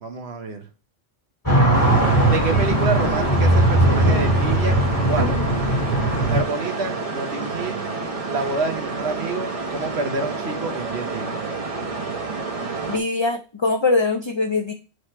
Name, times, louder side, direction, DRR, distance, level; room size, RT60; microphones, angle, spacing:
voice 1, 0.0-0.6 2.3-5.3 6.2-7.8 8.2-11.3, right 3 dB, 75° right, 5 dB, 1.2 m, -28 dB
sound 1, 1.5-6.4, right 1 dB, 20° left, 2.1 m, -19 dB
sound 2, 1.7-13.0, right 3 dB, 35° right, 1.0 m, -29 dB
voice 2, 12.9-14.7, left 3 dB, 35° left, 5 dB, 0.4 m, -22 dB
7.9 x 3.2 x 4.3 m, 0.34 s
omnidirectional pair, 1.1 m